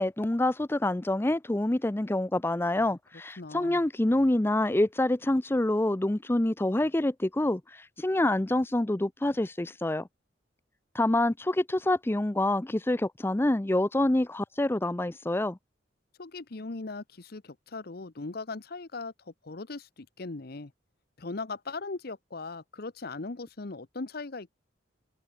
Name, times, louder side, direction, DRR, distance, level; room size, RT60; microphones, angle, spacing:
voice 1, 0.0-10.1 10.9-15.6, left 1 dB, 10° left, 0.5 m, -27 dB
voice 2, 3.4-3.8 16.2-19.1 19.4-20.7 21.2-24.5, left 3 dB, 55° left, 0.9 m, -39 dB
head